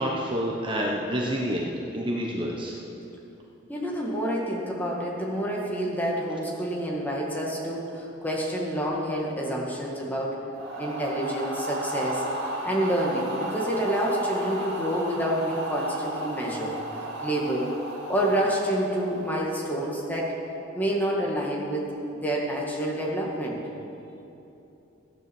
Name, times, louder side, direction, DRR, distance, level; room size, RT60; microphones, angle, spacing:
voice 1, 0.0-2.7, equal, 25° right, -2 dB, 1.1 m, -28 dB
voice 2, 3.7-10.4 10.8-12.2 12.6-16.8 17.2-17.7 18.1-20.3 20.7-23.6, equal, 10° left, -3 dB, 1.9 m, -28 dB
sound 1, 10.5-19.6, right 1 dB, 55° right, 2.5 m, -34 dB
15.0 x 9.4 x 7.1 m, 2.9 s
head